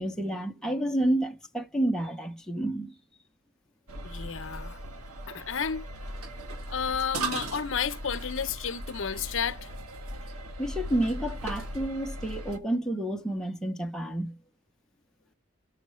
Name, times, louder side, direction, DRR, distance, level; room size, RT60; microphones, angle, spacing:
voice 1, 0.0-2.9 10.6-14.4, right 1 dB, 5° left, 0.7 m, -30 dB
sound 1, 3.9-12.6, right 1 dB, 85° right, 1.4 m, -38 dB
voice 2, 4.0-4.8 5.3-5.9 6.7-9.7, left 7 dB, 60° left, 0.7 m, -31 dB
11.0 x 6.5 x 3.1 m
head